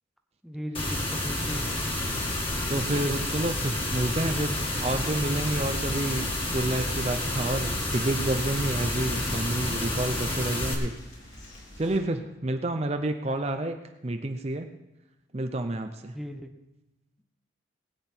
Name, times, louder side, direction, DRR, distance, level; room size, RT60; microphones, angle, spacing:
voice 1, 0.4-1.7 16.1-16.5, equal, ahead, 4 dB, 0.8 m, -37 dB
sound 1, 0.7-10.7, left 1 dB, 30° left, 2.1 m, -30 dB
sound 2, 1.8-12.0, left 1 dB, 85° left, 3.5 m, -46 dB
voice 2, 2.7-10.9 11.8-13.8 14.0-14.7 15.3-16.1, right 1 dB, 35° right, 6 dB, 0.6 m, -29 dB
19.5 x 8.8 x 4.5 m, 0.98 s
head